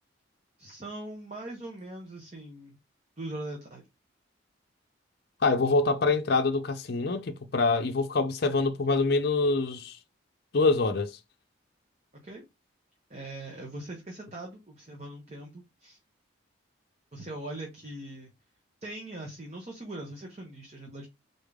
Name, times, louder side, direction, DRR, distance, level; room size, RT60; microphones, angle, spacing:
voice 1, 0.6-2.8 3.2-3.8 12.2-12.4 13.1-16.0 17.1-18.3 18.8-21.1, right 1 dB, 35° right, 0.9 m, -41 dB
voice 2, 5.4-10.0 10.5-11.1, left 3 dB, 55° left, 0.5 m, -25 dB
3.9 x 3.6 x 3.5 m
head